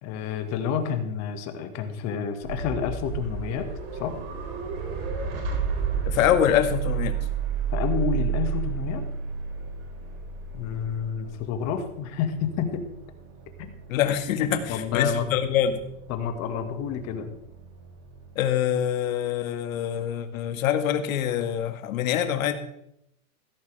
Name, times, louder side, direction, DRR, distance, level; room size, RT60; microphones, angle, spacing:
voice 1, 0.0-3.7 4.0-4.2 7.7-9.0 10.5-12.8 13.6-13.7 14.7-15.3 16.1-17.3, left 7 dB, 40° left, 6 dB, 1.9 m, -29 dB
sound 1, 2.4-18.3, right 7 dB, 50° right, 4.7 m, -32 dB
voice 2, 6.1-7.2 13.9-15.8 18.4-22.5, left 10 dB, 70° left, 7 dB, 2.0 m, -25 dB
16.0 x 14.0 x 3.5 m, 0.77 s
supercardioid pair, 140°, 43 cm